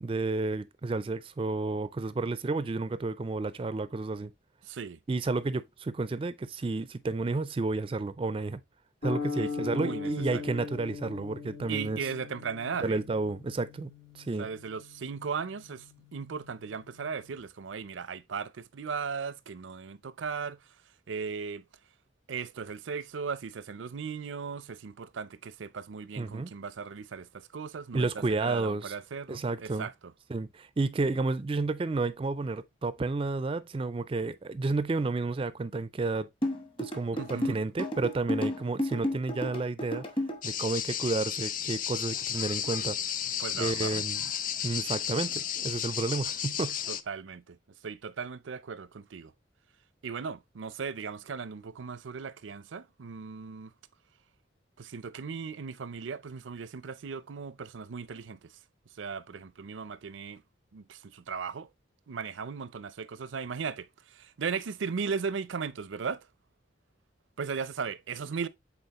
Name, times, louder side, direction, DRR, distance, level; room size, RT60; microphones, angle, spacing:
voice 1, 0.0-4.3 5.1-8.6 9.0-12.0 12.8-14.5 26.2-26.5 27.9-29.0 29.3-29.9 30.3-36.3 36.8-40.0 40.4-44.2 44.6-46.8, right 3 dB, 30° right, 0.3 m, -31 dB
voice 2, 4.6-5.0 9.4-10.5 11.7-13.0 14.4-15.9 16.1-20.6 21.1-21.6 22.3-29.9 37.1-37.6 43.4-44.0 46.9-47.6 47.8-49.3 50.0-53.7 54.8-58.4 59.0-60.4 60.7-61.7 62.1-66.3 67.4-68.5, right 5 dB, 85° right, 0.5 m, -37 dB
sound 1, 9.0-17.4, left 4 dB, 80° left, 4.4 m, -40 dB
sound 2, 36.4-40.4, equal, 30° left, 1.1 m, -31 dB
sound 3, 40.4-47.0, left 9 dB, 45° left, 0.5 m, -33 dB
8.0 x 4.1 x 2.9 m
head